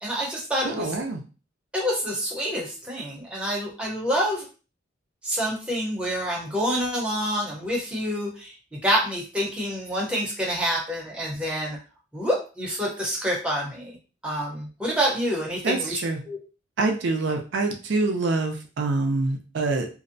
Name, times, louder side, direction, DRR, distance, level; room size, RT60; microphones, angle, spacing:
voice 1, 0.0-0.9 1.7-4.5 5.2-11.8 12.1-14.0 14.2-16.0 16.3-16.4, equal, 5° right, -3 dB, 0.7 m, -27 dB
voice 2, 0.6-1.2 15.6-16.2 16.8-19.9, right 3 dB, 70° right, 3 dB, 0.4 m, -25 dB
2.5 x 2.1 x 2.5 m, 0.34 s
head